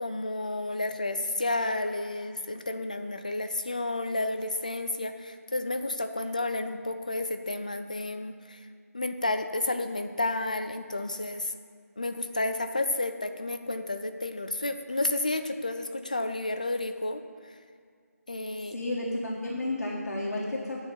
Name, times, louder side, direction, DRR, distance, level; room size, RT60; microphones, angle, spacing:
voice 1, 0.0-8.6 8.9-11.5 12.0-17.2 18.3-18.8, left 2 dB, 30° left, 8 dB, 0.3 m, -31 dB
voice 2, 18.6-20.8, left 1 dB, 85° left, -4 dB, 1.6 m, -32 dB
9.6 x 4.6 x 7.0 m, 2.1 s
figure-of-eight pair, 180°, 9 cm